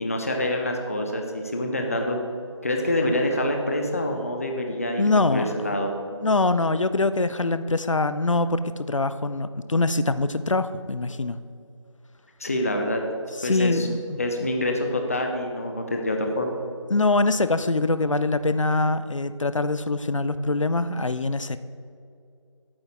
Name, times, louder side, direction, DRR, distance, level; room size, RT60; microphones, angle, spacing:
voice 1, 0.0-2.2 2.6-5.9 12.4-13.0 13.4-13.9 14.2-16.6, left 1 dB, 30° left, 3 dB, 0.7 m, -26 dB
voice 2, 5.0-5.7 6.2-11.4 13.4-14.2 16.9-21.6, left 2 dB, 75° left, 12 dB, 0.5 m, -23 dB
8.7 x 8.0 x 4.2 m, 2.5 s
figure-of-eight pair, 165°, 16 cm